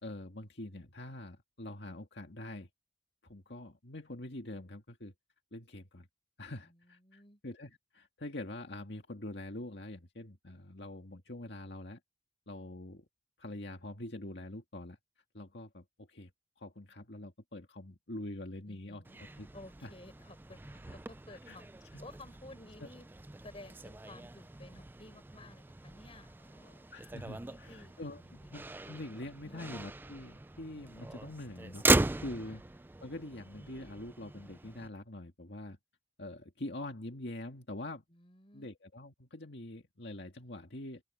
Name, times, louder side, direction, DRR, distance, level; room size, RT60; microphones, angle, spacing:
voice 1, 0.0-2.7 3.2-5.1 5.5-6.1 6.4-12.0 12.5-13.1 13.4-15.0 15.3-16.3 16.6-19.0 19.4-19.5 19.8-19.9 20.9-21.0 21.3-21.6 22.8-22.9 26.9-31.8 32.2-32.6 33.0-35.8 36.2-38.0 38.5-41.0, left 1 dB, 65° left, 2.1 m, -44 dB
voice 2, 7.0-7.4 18.7-19.2 19.5-23.1 23.4-26.9 27.3-28.7 29.4-29.8 32.4-32.6 38.1-38.7, left 2 dB, 30° left, 4.4 m, -54 dB
Motor vehicle (road), 19.0-34.9, right 2 dB, 10° right, 0.3 m, -38 dB
open air
head